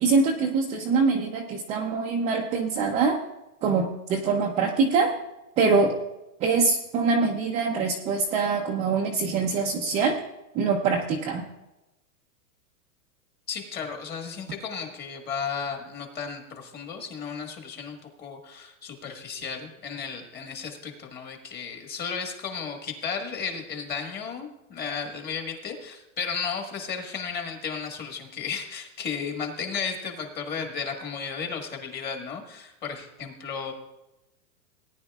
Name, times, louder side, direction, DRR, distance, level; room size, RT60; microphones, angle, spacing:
voice 1, 0.0-3.2 3.6-5.1 5.6-5.9 6.4-10.2 10.5-11.4, right 4 dB, 15° right, -1 dB, 0.5 m, -24 dB
voice 2, 13.5-33.7, left 6 dB, 20° left, 3 dB, 1.5 m, -34 dB
18.5 x 10.0 x 2.3 m, 0.95 s
supercardioid pair, 150°, 44 cm